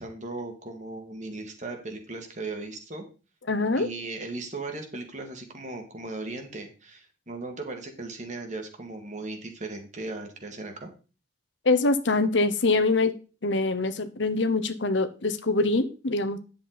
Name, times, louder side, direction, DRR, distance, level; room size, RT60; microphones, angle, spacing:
voice 1, 0.0-3.0 3.8-10.9, right 2 dB, 40° right, 4 dB, 2.1 m, -37 dB
voice 2, 3.5-3.9 11.6-13.1 13.4-16.4, left 3 dB, 75° left, 12 dB, 1.0 m, -24 dB
10.0 x 7.3 x 4.1 m, 0.34 s
head